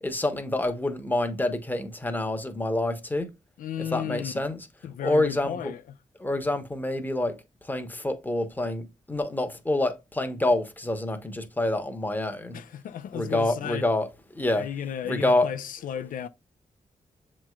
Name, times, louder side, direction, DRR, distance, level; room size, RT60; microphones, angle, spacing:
voice 1, 0.0-3.3 3.8-4.7 5.0-5.7 6.2-7.3 7.6-12.6 13.1-14.1 14.3-14.6 15.0-15.5, left 1 dB, 15° left, 0.8 m, -27 dB
voice 2, 3.6-4.3 4.8-5.8 12.5-13.9 14.6-16.3, left 9 dB, 85° left, 0.4 m, -34 dB
7.2 x 3.1 x 2.3 m
cardioid pair, 75°, 14 cm